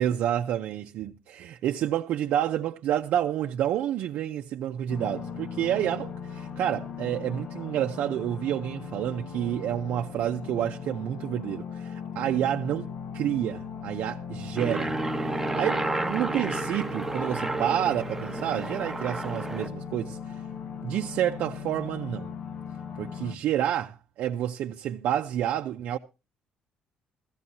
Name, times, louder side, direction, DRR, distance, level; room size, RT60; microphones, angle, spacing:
voice 1, 0.0-12.9 13.1-14.9 15.6-20.4 20.8-22.3 23.0-26.0, right 11 dB, 75° right, 0.6 m, -29 dB
sound 1, 4.9-23.4, left 7 dB, 60° left, 1.0 m, -38 dB
Aircraft, 14.6-19.7, right 2 dB, 5° right, 0.9 m, -31 dB
15.0 x 14.5 x 2.8 m
cardioid pair, 125°, 3 cm